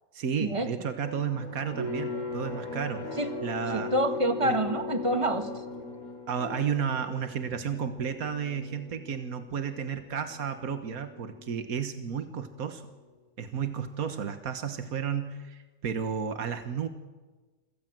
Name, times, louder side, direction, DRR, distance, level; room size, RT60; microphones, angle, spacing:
voice 1, 0.1-3.1 3.4-3.9 4.4-4.6 6.3-12.8 13.4-16.9, right 7 dB, 80° right, 8 dB, 1.8 m, -32 dB
sound 1, 1.0-6.7, left 1 dB, 80° left, 3.7 m, -42 dB
sound 2, 1.8-12.8, left 3 dB, 60° right, 6.9 m, -40 dB
voice 2, 3.7-5.5, right 1 dB, 20° right, 7 dB, 1.6 m, -27 dB
27.5 x 17.0 x 7.5 m, 1.3 s
omnidirectional pair, 1.5 m